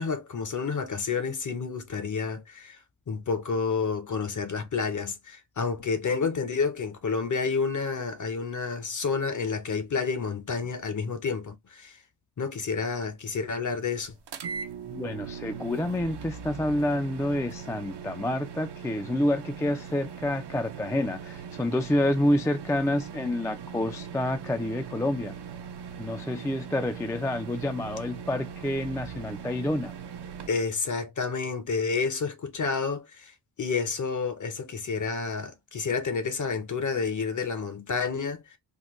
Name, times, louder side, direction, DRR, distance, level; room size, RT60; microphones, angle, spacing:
voice 1, 0.0-2.8 3.1-12.0 12.4-14.1 30.5-38.6, left 5 dB, 45° left, 0.7 m, -30 dB
sound 1, 14.3-30.5, right 7 dB, 70° right, 0.7 m, -40 dB
voice 2, 14.9-25.3 26.0-29.9, left 1 dB, 10° left, 0.3 m, -28 dB
3.7 x 2.1 x 3.0 m
wide cardioid pair, 115°, 42 cm